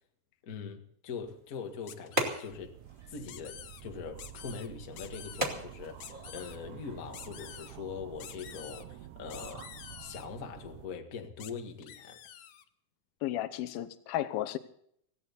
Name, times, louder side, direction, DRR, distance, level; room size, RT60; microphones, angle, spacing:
voice 1, 0.4-2.8 3.1-12.2, left 6 dB, 35° left, 1.5 m, -42 dB
sound 1, 1.1-7.2, right 1 dB, 15° right, 2.0 m, -40 dB
sound 2, 1.9-2.5 3.2-3.8 4.2-4.7 5.0-5.5 6.0-6.6 7.1-7.7 8.2-8.8 9.3-10.3 11.4-11.5 11.8-12.6, left 11 dB, 65° left, 1.9 m, -48 dB
sound 3, 2.5-10.9, right 12 dB, 80° right, 1.6 m, -49 dB
voice 2, 13.2-14.6, left 13 dB, 85° left, 2.8 m, -33 dB
18.0 x 17.0 x 4.1 m
omnidirectional pair, 4.2 m